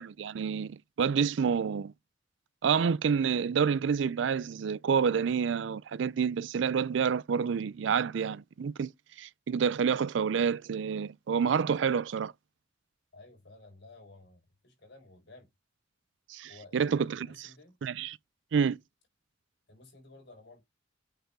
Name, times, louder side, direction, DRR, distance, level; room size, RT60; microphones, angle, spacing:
voice 1, 0.0-1.9 2.6-8.9 9.2-12.3 16.3-17.5 17.8-18.2 18.5-18.8, right 6 dB, 70° right, 0.4 m, -28 dB
voice 2, 13.1-15.5 16.5-17.8 19.7-20.6, left 2 dB, 60° left, 4.9 m, -54 dB
8.0 x 3.8 x 4.5 m
head